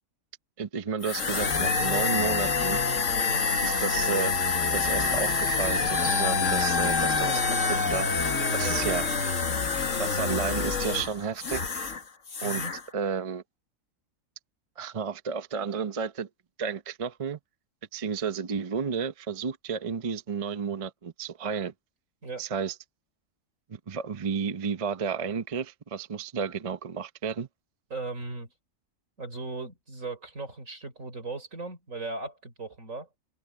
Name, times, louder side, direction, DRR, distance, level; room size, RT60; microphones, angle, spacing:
voice 1, 0.6-2.8 3.6-4.3 4.7-8.1 8.5-9.1 10.0-11.6 12.4-12.6 12.9-13.4 14.8-16.3 16.6-17.4 17.9-21.7 22.4-22.7 23.7-27.5, right 6 dB, 35° right, 0.7 m, -32 dB
sound 1, 1.0-12.0 12.3-12.8, left 4 dB, 70° left, 2.1 m, -26 dB
voice 2, 8.4-9.0 12.4-12.7 22.2-22.5 27.9-28.5 29.2-33.1, right 3 dB, 75° right, 4.7 m, -37 dB
omnidirectional pair, 1.4 m